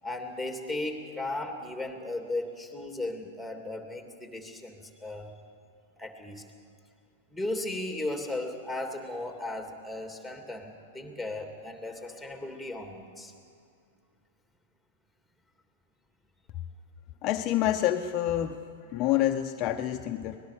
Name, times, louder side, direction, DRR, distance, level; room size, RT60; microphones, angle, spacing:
voice 1, 0.0-5.3 6.0-6.4 7.3-13.3, left 2 dB, 5° right, 4 dB, 3.1 m, -36 dB
voice 2, 17.2-18.6 18.9-20.4, left 12 dB, 35° left, 6 dB, 0.9 m, -27 dB
24.0 x 19.5 x 6.9 m, 2.3 s
hypercardioid pair, 110°, 0 cm